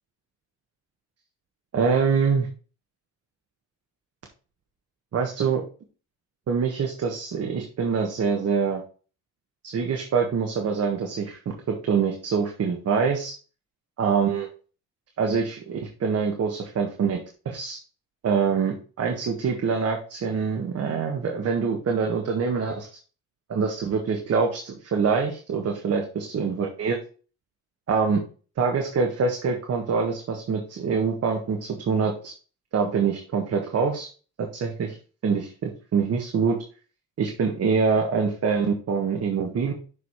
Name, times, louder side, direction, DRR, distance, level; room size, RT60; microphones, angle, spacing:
voice 1, 1.7-2.5 5.1-5.6 6.5-8.8 9.6-13.3 14.0-14.5 15.2-17.2 17.4-17.8 18.2-23.0 23.5-27.0 27.9-28.2 28.6-32.3 32.7-34.1 34.4-34.9 35.2-36.6 37.2-39.7, right 5 dB, 55° right, 2 dB, 1.6 m, -25 dB
6.7 x 5.0 x 4.2 m, 0.37 s
cardioid pair, 90°, 30 cm